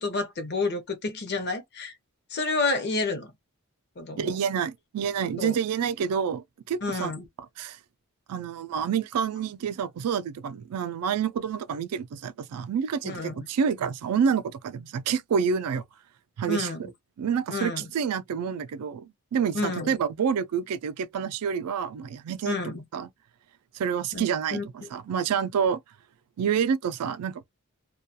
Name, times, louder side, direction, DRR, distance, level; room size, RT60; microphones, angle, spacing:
voice 1, 0.0-1.9 2.3-3.3 4.0-4.4 5.4-5.6 6.8-7.3 13.0-13.5 16.5-16.8 17.5-17.9 19.5-19.9 22.4-22.8 24.1-24.2 24.5-24.6, left 3 dB, 50° left, 0.7 m, -29 dB
voice 2, 4.2-7.1 7.6-7.8 8.3-15.8 16.4-16.7 17.2-22.5 22.9-23.1 23.7-25.8 26.4-27.4, right 7 dB, 90° right, 0.4 m, -28 dB
2.3 x 2.2 x 2.7 m
head